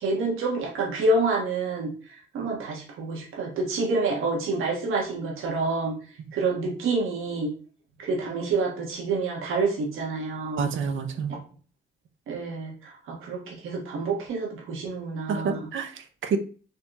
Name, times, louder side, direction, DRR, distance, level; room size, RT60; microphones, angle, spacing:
voice 1, 0.0-1.9 2.3-5.9 6.3-7.5 8.0-10.7 12.3-15.6, right 3 dB, 90° right, -1 dB, 1.3 m, -28 dB
voice 2, 10.6-11.4 15.3-16.4, right 5 dB, 70° right, 7 dB, 0.7 m, -28 dB
4.1 x 2.9 x 3.9 m, 0.40 s
cardioid pair, 65°, 21 cm